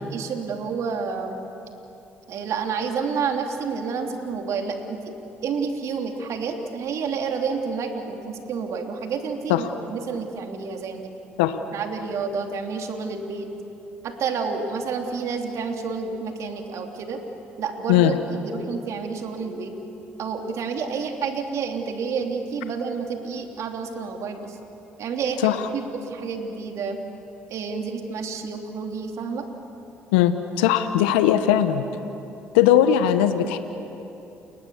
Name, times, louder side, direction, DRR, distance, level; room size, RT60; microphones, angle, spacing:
voice 1, 0.1-1.5 2.3-5.1 5.4-11.1 11.7-13.5 14.0-17.2 17.6-19.7 20.2-24.6 25.0-27.0 27.5-29.5, right 5 dB, 60° right, 3 dB, 3.1 m, -29 dB
voice 2, 30.1-31.8 32.5-33.6, left 11 dB, 80° left, 10 dB, 0.9 m, -19 dB
30.0 x 22.0 x 7.2 m, 2.9 s
hypercardioid pair, 55°, 6 cm